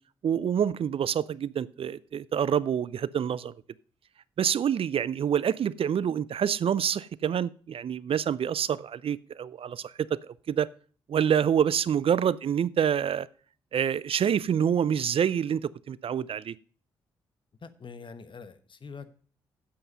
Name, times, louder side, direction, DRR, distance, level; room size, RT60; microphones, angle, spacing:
voice 1, 0.2-3.5 4.4-10.7 11.1-13.3 13.7-16.6, right 8 dB, 50° right, 0.5 m, -27 dB
voice 2, 17.6-19.1, left 5 dB, 45° left, 1.2 m, -44 dB
8.4 x 7.8 x 5.5 m
hypercardioid pair, 40°, 12 cm